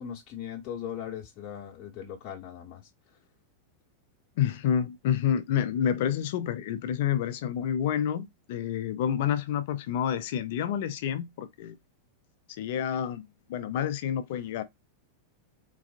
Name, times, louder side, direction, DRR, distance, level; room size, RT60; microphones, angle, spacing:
voice 1, 0.0-3.2, left 9 dB, 35° left, 1.0 m, -39 dB
voice 2, 4.4-11.8 12.6-13.2 13.5-14.6, left 9 dB, 50° left, 0.5 m, -28 dB
3.9 x 2.4 x 2.5 m
figure-of-eight pair, 90°, 0 cm